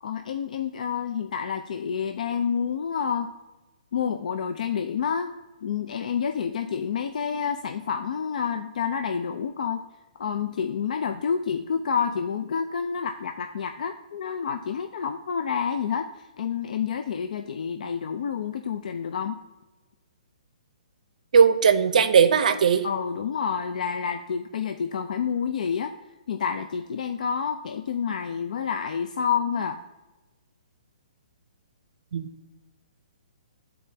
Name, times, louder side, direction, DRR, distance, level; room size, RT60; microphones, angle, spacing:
voice 1, 0.0-3.3 3.9-5.3 5.6-9.9 10.2-19.4 22.8-25.9 26.3-29.8, left 7 dB, 65° left, 7 dB, 0.4 m, -29 dB
voice 2, 21.3-22.9 32.1-32.3, right 6 dB, 70° right, 10 dB, 0.5 m, -18 dB
10.5 x 4.2 x 2.7 m, 1.1 s
hypercardioid pair, 155°, 4 cm